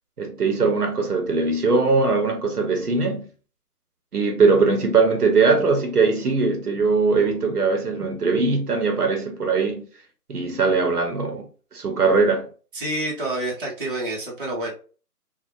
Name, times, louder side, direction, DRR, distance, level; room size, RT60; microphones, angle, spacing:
voice 1, 0.2-3.3 4.1-9.9 10.3-12.5, right 4 dB, 75° right, 0.9 m, -21 dB
voice 2, 12.7-14.7, right 1 dB, 35° right, 0.7 m, -28 dB
2.4 x 2.1 x 2.7 m
figure-of-eight pair, 160°, 47 cm